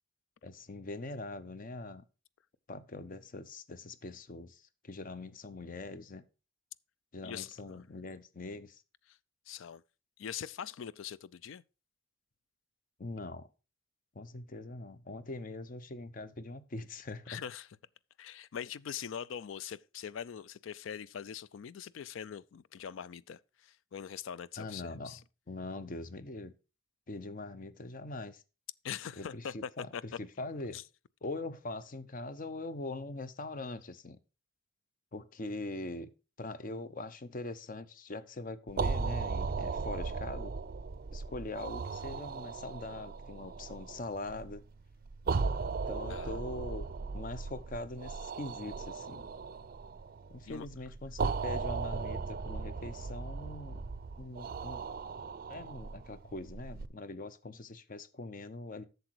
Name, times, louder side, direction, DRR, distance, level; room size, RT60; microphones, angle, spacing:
voice 1, 0.4-2.0 2.7-6.3 7.1-8.8 13.0-13.5 14.1-17.4 24.6-25.2 25.5-26.5 27.1-28.4 29.2-30.8 31.2-34.2 35.1-36.1 36.4-40.5 41.1-44.6 45.9-46.9 47.1-49.3 50.3-53.9 54.2-54.8 55.5-58.8, left 2 dB, 45° left, 0.7 m, -42 dB
voice 2, 7.2-7.8 9.1-9.2 9.5-9.8 10.2-11.6 17.3-17.7 18.2-25.2 28.8-30.2 30.7-30.8 46.1-46.4 50.5-50.7, left 8 dB, 70° left, 0.4 m, -42 dB
sound 1, 38.7-56.9, right 4 dB, 45° right, 0.4 m, -37 dB
7.9 x 6.8 x 4.6 m
head